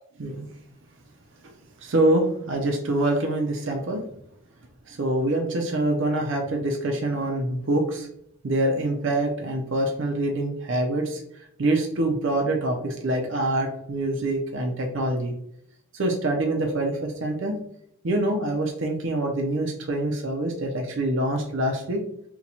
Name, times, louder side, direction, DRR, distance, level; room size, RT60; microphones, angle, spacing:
voice 1, 1.8-4.1 4.9-8.1 8.4-11.2 11.6-15.3 15.9-17.6 18.0-22.0, right 1 dB, 55° right, 2 dB, 0.5 m, -25 dB
2.8 x 2.2 x 4.0 m, 0.72 s
head